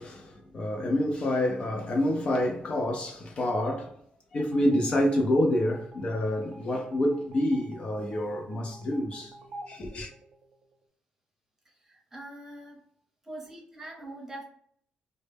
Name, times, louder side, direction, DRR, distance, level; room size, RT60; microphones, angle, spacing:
voice 1, 0.0-4.0 4.3-9.4 9.7-10.1, left 1 dB, 40° left, 0.4 m, -27 dB
sound 1, 4.4-10.9, right 2 dB, 50° right, 0.3 m, -49 dB
voice 2, 11.8-12.8 13.2-14.4, right 1 dB, 15° right, 0.8 m, -43 dB
2.1 x 2.0 x 3.3 m
cardioid pair, 125°, 3 cm